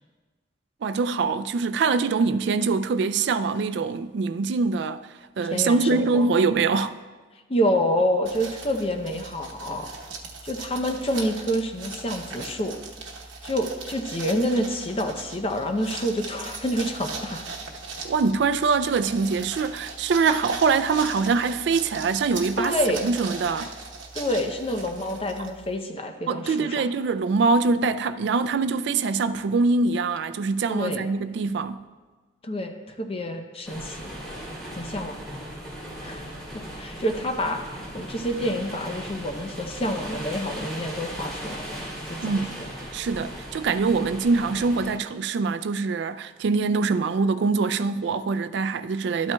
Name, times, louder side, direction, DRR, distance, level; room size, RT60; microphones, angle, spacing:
voice 1, 0.8-5.0 5.4-6.9 18.0-22.8 23.0-23.7 26.3-31.8 42.2-42.6 42.9-49.3, right 4 dB, 65° right, 0.3 m, -24 dB
voice 2, 5.5-6.3 7.5-9.9 10.4-12.8 13.4-17.4 22.6-23.0 24.1-26.9 30.7-31.1 32.4-34.1 34.7-35.2 36.0-36.3 36.8-41.8 42.1-42.7, equal, 30° left, 0.6 m, -28 dB
sound 1, 8.3-25.8, right 3 dB, 90° right, 1.0 m, -39 dB
sound 2, 33.6-44.9, equal, ahead, 2.9 m, -37 dB
12.5 x 8.7 x 2.2 m
head